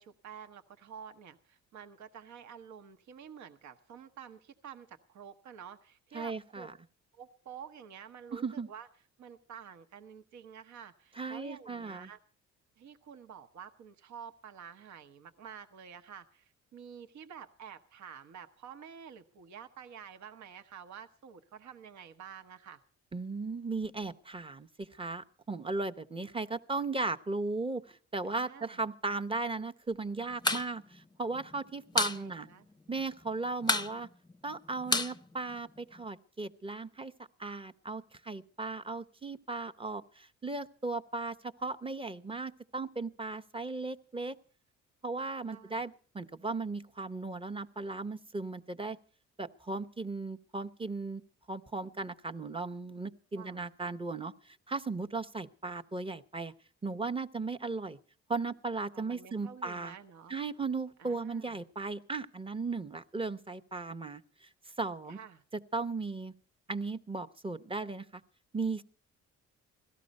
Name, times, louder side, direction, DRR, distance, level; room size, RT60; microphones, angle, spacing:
voice 1, 0.0-6.7 7.1-8.9 9.2-12.2 12.8-22.8 28.3-28.8 31.9-32.7 45.5-45.8 53.3-53.6 58.9-60.3 61.0-61.6 65.1-65.4, right 8 dB, 70° right, 9 dB, 1.1 m, -49 dB
voice 2, 6.1-6.7 8.3-8.7 11.2-12.1 23.1-32.5 32.9-34.1 34.4-37.1 37.4-44.4 45.0-49.0 49.4-51.2 51.5-56.5 56.8-58.0 58.3-59.9 60.3-64.5 64.8-65.2 65.5-66.3 66.7-68.2 68.5-68.8, right 3 dB, 20° right, 8 dB, 0.8 m, -36 dB
sound 1, 30.3-30.7 30.9-31.0 31.3-32.2 32.5-32.6 32.9-33.3 33.6-36.0, left 2 dB, 15° left, 0.6 m, -30 dB
17.5 x 13.5 x 5.3 m, 0.41 s
cardioid pair, 90°, 30 cm